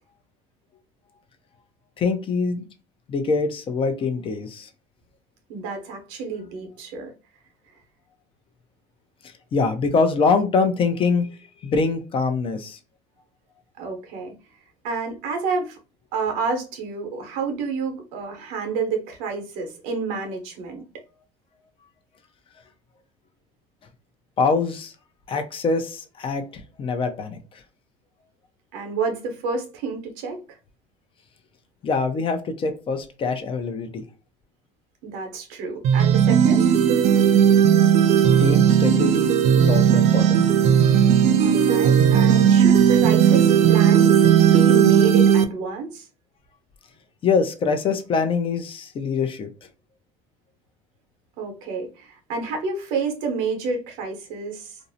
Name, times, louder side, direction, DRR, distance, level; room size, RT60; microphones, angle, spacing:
voice 1, 2.0-2.7 3.1-4.7 9.5-11.3 11.6-12.8 24.4-24.9 25.3-27.4 31.8-34.0 38.4-40.4 47.2-49.5, left 4 dB, 40° left, 0.5 m, -24 dB
voice 2, 5.5-7.1 13.8-14.3 14.8-15.8 16.1-20.8 28.7-30.6 35.0-36.8 41.4-46.1 51.4-54.8, right 4 dB, 80° right, 0.9 m, -29 dB
sound 1, 35.8-45.4, right 8 dB, 50° right, 0.4 m, -16 dB
2.6 x 2.0 x 2.6 m
supercardioid pair, 105°, 14 cm